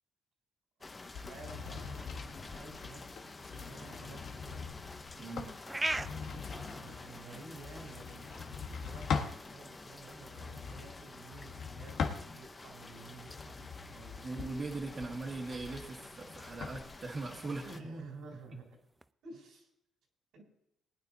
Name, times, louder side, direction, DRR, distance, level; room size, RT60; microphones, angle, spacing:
sound 1, 0.8-17.8, left 3 dB, 25° left, 0.9 m, -50 dB
voice 1, 0.8-2.2 2.5-4.6 6.8-8.3 8.8-14.3 17.6-18.8 19.2-19.7 20.3-20.4, right 3 dB, 80° right, 1 dB, 3.9 m, -51 dB
sound 2, 1.1-9.4 10.2-12.7 13.2-16.8, left 5 dB, 70° left, 1.4 m, -42 dB
sound 3, 5.0-19.1, right 2 dB, 15° right, 0.4 m, -46 dB
voice 2, 5.2-5.5 14.2-17.7, right 3 dB, 40° right, -2 dB, 1.9 m, -40 dB
20.5 x 9.4 x 2.9 m, 0.79 s
cardioid pair, 90°, 0 cm